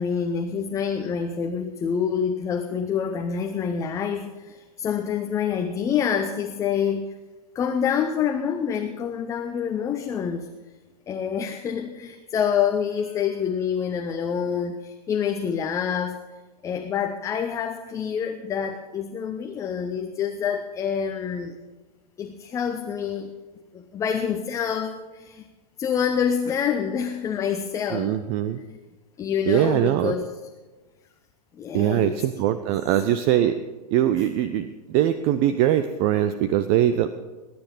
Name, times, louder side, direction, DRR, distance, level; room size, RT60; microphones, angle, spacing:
voice 1, 0.0-7.1 7.5-10.5 11.1-16.2 16.6-21.6 22.2-23.3 23.7-25.5 25.8-28.1 29.2-30.3 31.5-32.2 34.2-34.3, left 7 dB, 15° left, 6 dB, 0.7 m, -27 dB
voice 2, 27.9-28.6 29.5-30.2 31.7-33.6 33.9-37.1, right 11 dB, 30° right, 11 dB, 0.5 m, -22 dB
20.0 x 9.5 x 5.4 m, 1.3 s
figure-of-eight pair, 105°, 21 cm